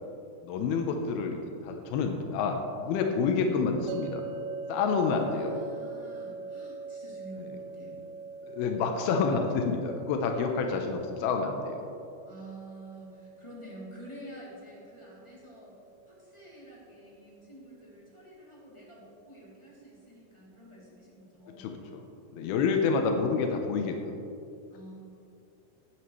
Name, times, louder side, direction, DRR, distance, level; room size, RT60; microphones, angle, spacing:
voice 1, 0.4-4.3 4.7-5.6 7.8-7.9 8.4-11.9 21.6-22.0 22.3-24.1, left 5 dB, 90° left, 4 dB, 2.7 m, -28 dB
sound 1, 3.9-17.0, right 5 dB, 80° right, 2.3 m, -43 dB
voice 2, 4.7-8.1 12.2-15.8 16.1-21.7 24.7-24.9, right 1 dB, 10° left, -6 dB, 2.3 m, -49 dB
18.0 x 9.2 x 3.2 m, 2.6 s
omnidirectional pair, 4.3 m